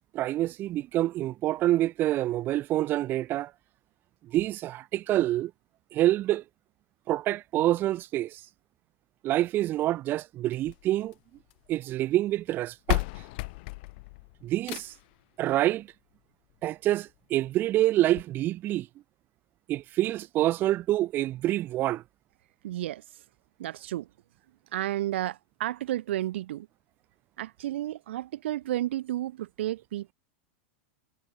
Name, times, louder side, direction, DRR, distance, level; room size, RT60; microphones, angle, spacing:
voice 1, 0.1-3.5 4.3-5.5 5.9-6.4 7.1-8.4 9.2-11.1 11.7-13.0 14.4-14.9 15.4-15.9 16.6-18.9 19.7-22.0, right 14 dB, 30° right, 4.3 m, -27 dB
sound 1, 10.5-11.7 12.5-12.6 12.9-15.2 16.5-16.6 17.1-17.2 17.4-17.5 18.1-18.2, left 25 dB, 50° left, 1.4 m, -34 dB
voice 2, 22.6-23.0 23.6-24.1 24.7-26.7 27.4-30.1, right 14 dB, 70° right, 4.0 m, -32 dB
supercardioid pair, 145°, 6 cm